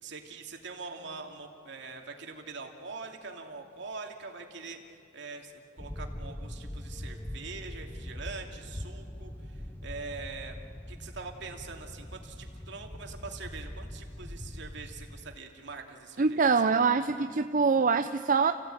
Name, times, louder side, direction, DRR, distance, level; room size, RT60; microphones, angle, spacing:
voice 1, 0.0-10.6 10.9-16.4, right 4 dB, 65° right, 3 dB, 2.6 m, -43 dB
sound 1, 5.8-15.4, left 1 dB, 10° left, 0.7 m, -42 dB
voice 2, 16.2-18.5, right 5 dB, 45° right, 8 dB, 0.6 m, -24 dB
30.0 x 16.0 x 9.2 m, 2.4 s
head